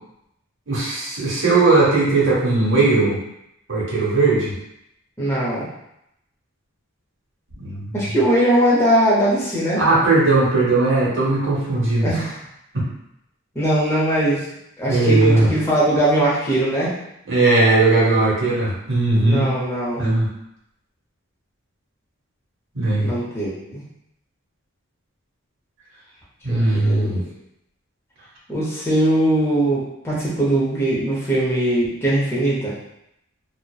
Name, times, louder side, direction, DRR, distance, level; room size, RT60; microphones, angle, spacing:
voice 1, 0.7-3.2 3.7-4.5 7.6-7.8 9.8-12.1 12.7-12.8 14.9-15.5 17.3-19.4 20.0-20.3 22.7-23.1 26.4-27.2, right 2 dB, 60° right, -5 dB, 0.9 m, -18 dB
voice 2, 5.2-5.7 7.9-9.8 12.0-12.4 13.5-14.5 14.8-17.0 19.2-20.0 23.0-23.8 26.5-27.2 28.5-32.7, right 1 dB, 10° left, -8 dB, 0.6 m, -20 dB
2.7 x 2.0 x 2.2 m, 0.81 s
head